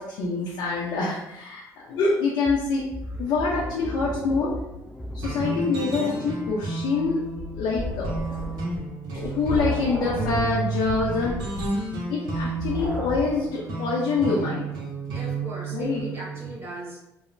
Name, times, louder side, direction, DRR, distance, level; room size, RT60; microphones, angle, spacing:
voice 1, 0.0-2.9 3.2-4.5 5.1-7.2 7.5-8.1 9.1-11.4 12.1-14.7 15.7-16.0, left 4 dB, 75° left, -5 dB, 0.6 m, -25 dB
voice 2, 1.6-1.9 3.0-3.1 8.3-8.6 15.1-17.0, right 1 dB, 30° right, -5 dB, 1.2 m, -39 dB
sound 1, 2.5-8.1, equal, 5° left, 0.4 m, -37 dB
sound 2, 5.2-16.5, right 3 dB, 75° right, 0.7 m, -32 dB
sound 3, 7.0-13.5, left 2 dB, 15° right, 0.8 m, -34 dB
3.0 x 2.1 x 2.5 m, 0.87 s
supercardioid pair, 75°, 8 cm